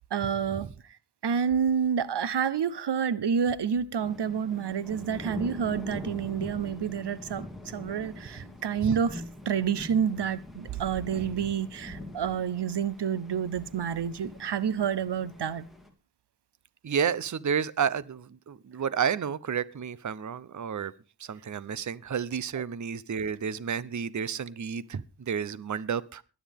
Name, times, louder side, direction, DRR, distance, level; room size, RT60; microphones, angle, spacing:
voice 1, 0.1-1.0 1.2-15.6 22.6-22.7, right 7 dB, 80° right, 0.8 m, -29 dB
sound 1, 4.0-15.9, left 1 dB, ahead, 2.8 m, -43 dB
voice 2, 16.8-20.9 21.2-26.2, right 7 dB, 45° right, 0.7 m, -31 dB
22.0 x 9.6 x 3.5 m
wide cardioid pair, 100°, 41 cm